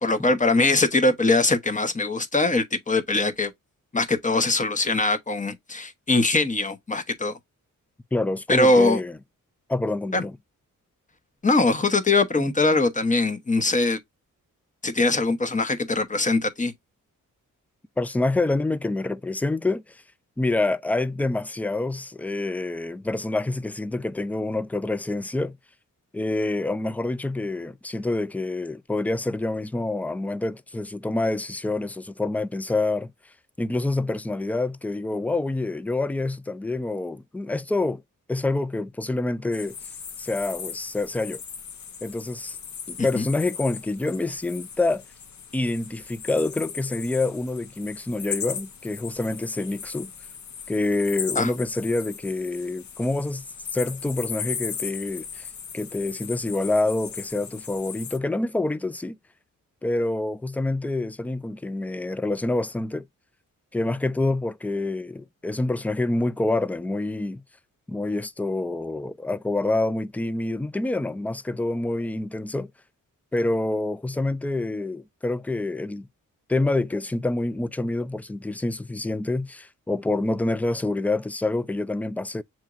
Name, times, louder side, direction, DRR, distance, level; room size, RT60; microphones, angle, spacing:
voice 1, 0.0-3.5 3.9-7.3 8.5-9.0 10.1-10.2 11.4-14.0 14.8-16.7 43.1-43.3 51.4-51.5, left 2 dB, 25° left, 0.9 m, -22 dB
voice 2, 8.1-9.2 9.7-10.4 18.0-20.0 20.4-25.6 26.1-33.1 33.6-38.0 38.3-39.8 40.2-41.4 42.0-42.6 42.9-45.0 45.5-50.1 50.7-53.4 53.7-55.5 55.7-59.2 59.8-63.1 63.7-67.4 67.9-72.7 73.3-76.1 76.5-82.4, left 2 dB, 5° left, 0.3 m, -27 dB
sound 1, 39.5-58.2, left 7 dB, 60° left, 0.9 m, -37 dB
7.1 x 3.0 x 2.4 m
cardioid pair, 90°, 33 cm